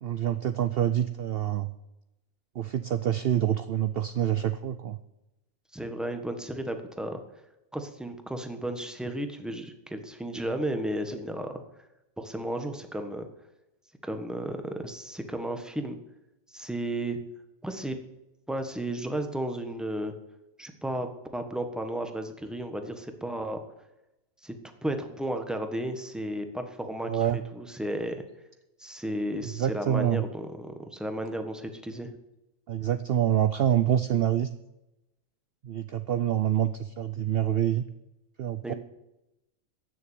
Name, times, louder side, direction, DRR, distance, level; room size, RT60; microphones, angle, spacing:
voice 1, 0.0-1.7 2.6-5.0 27.0-27.4 29.4-30.2 32.7-34.5 35.6-37.8 38.4-38.7, right 10 dB, 60° right, 12 dB, 0.7 m, -26 dB
voice 2, 5.7-7.2 7.7-11.6 12.2-13.3 14.0-16.0 16.5-17.2 17.6-18.0 18.5-20.1 20.6-21.1 21.3-23.6 24.4-24.5 24.8-28.2 28.8-32.1 38.6-38.7, right 1 dB, ahead, 6 dB, 1.4 m, -33 dB
15.5 x 7.1 x 9.1 m, 0.92 s
omnidirectional pair, 1.4 m